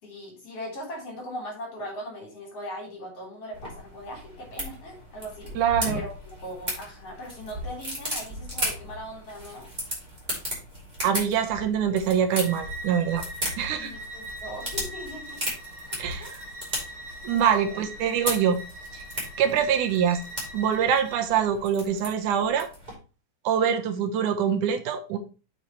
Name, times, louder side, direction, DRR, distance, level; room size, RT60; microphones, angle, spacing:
voice 1, 0.0-5.5 5.8-9.7 13.8-15.4 15.9-16.5 17.3-17.8, equal, 50° left, -1 dB, 4.6 m, -39 dB
sound 1, 3.5-22.9, equal, 15° right, 4.3 m, -36 dB
voice 2, 5.6-6.0 11.0-13.2 13.6-13.9 16.0-16.3 17.2-18.6 18.9-19.0 19.4-20.2 20.5-22.7 23.4-25.2, right 8 dB, 85° right, 7 dB, 2.5 m, -24 dB
Bowed string instrument, 12.4-21.2, right 1 dB, 45° right, 3.7 m, -42 dB
8.4 x 7.3 x 3.1 m, 0.33 s
omnidirectional pair, 3.5 m